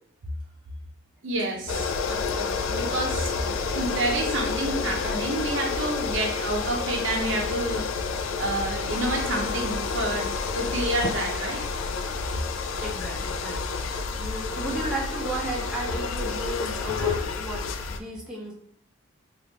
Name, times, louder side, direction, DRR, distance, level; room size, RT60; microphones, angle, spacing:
voice 1, 1.2-7.8 8.4-10.3 10.5-11.6, right 1 dB, 65° right, 1 dB, 0.6 m, -29 dB
sound 1, 1.7-18.0, left 4 dB, 75° left, 0.3 m, -29 dB
voice 2, 12.8-18.5, right 2 dB, 5° right, -5 dB, 0.5 m, -34 dB
3.3 x 2.4 x 2.9 m, 0.66 s
head